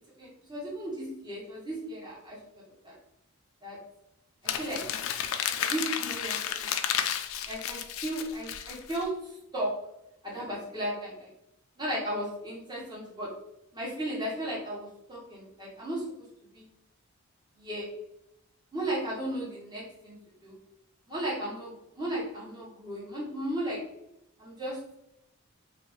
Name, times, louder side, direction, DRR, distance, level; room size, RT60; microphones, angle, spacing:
voice 1, 0.2-2.4 2.8-3.0 3.6-3.8 4.4-4.8 5.7-6.7 6.9-7.0 7.5-9.7 10.2-11.3 11.8-13.3 13.7-16.0 16.5-16.6 17.6-17.9 18.7-20.2 20.4-20.6 21.1-23.8 24.4-24.8, right 1 dB, 20° right, -6 dB, 1.1 m, -35 dB
Crumpling crinkling, 4.5-9.0, left 9 dB, 70° left, 0.3 m, -32 dB
3.1 x 2.6 x 3.1 m, 0.83 s
head